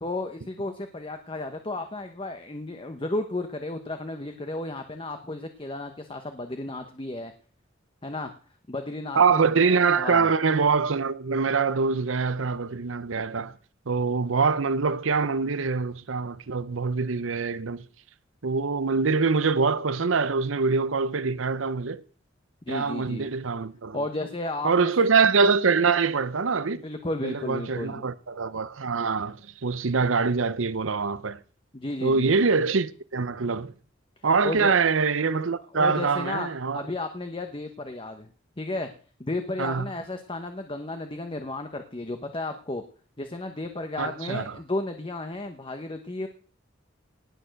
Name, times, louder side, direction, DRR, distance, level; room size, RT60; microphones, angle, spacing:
voice 1, 0.0-7.3 8.0-8.3 8.7-10.3 22.7-23.3 23.9-24.9 26.7-28.0 31.7-32.3 34.4-34.8 35.7-36.5 36.7-38.3 38.6-38.9 39.2-42.8 43.2-46.3, left 2 dB, 25° left, 1.0 m, -33 dB
voice 2, 9.2-13.5 13.9-17.8 18.4-22.0 22.7-24.0 24.6-26.8 27.2-31.4 32.0-33.7 34.2-36.8 39.6-39.9 44.0-44.6, right 4 dB, 85° right, 0.7 m, -24 dB
18.5 x 7.0 x 6.5 m
head